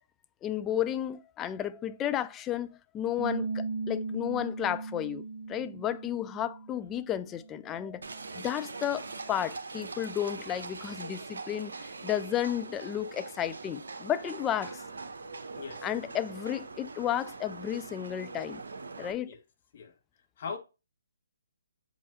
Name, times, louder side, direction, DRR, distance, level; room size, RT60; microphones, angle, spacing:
voice 1, 0.4-8.0 8.3-11.7 12.0-14.8 15.8-18.6 19.0-19.3, left 11 dB, 15° left, 0.4 m, -33 dB
Bass guitar, 3.2-9.4, right 4 dB, 20° right, 1.4 m, -39 dB
Livestock farm animals working animals, 8.0-19.1, right 3 dB, 60° right, 1.2 m, -42 dB
voice 2, 15.5-15.9 19.2-19.4 19.7-19.9 20.4-20.6, left 5 dB, 45° left, 1.4 m, -39 dB
7.6 x 5.3 x 2.6 m
figure-of-eight pair, 135°, 0 cm